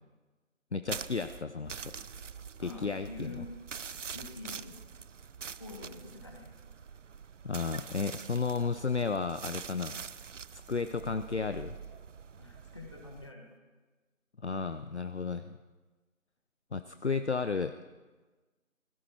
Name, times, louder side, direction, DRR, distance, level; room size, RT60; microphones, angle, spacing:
voice 1, 0.7-1.9 2.6-3.4 7.4-10.0 10.5-11.8 14.4-15.5 16.7-17.7, left 4 dB, 55° left, 10 dB, 0.6 m, -33 dB
sound 1, 0.9-13.3, right 6 dB, 65° right, 0.5 m, -45 dB
voice 2, 2.6-3.5 4.1-4.8 5.6-6.5 12.4-13.5, left 3 dB, 20° left, 1 dB, 1.5 m, -46 dB
16.0 x 15.5 x 4.5 m, 1.3 s
figure-of-eight pair, 165°, 41 cm